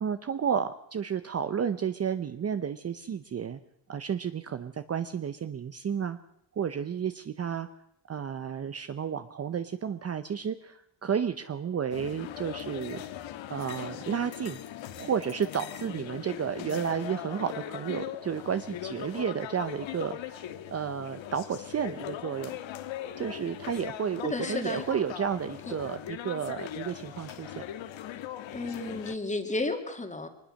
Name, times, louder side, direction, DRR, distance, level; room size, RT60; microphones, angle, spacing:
voice 1, 0.0-3.6 3.9-6.2 6.5-7.7 8.1-13.0 13.5-14.6 15.0-22.5 23.2-27.6, right 7 dB, 30° right, 10 dB, 0.7 m, -32 dB
sound 1, 11.9-29.2, left 11 dB, 75° left, 1.5 m, -40 dB
voice 2, 24.2-24.8 25.7-25.8 28.5-30.3, left 2 dB, 15° left, 6 dB, 2.3 m, -32 dB
22.5 x 20.0 x 6.4 m, 0.76 s
cardioid pair, 140°, 47 cm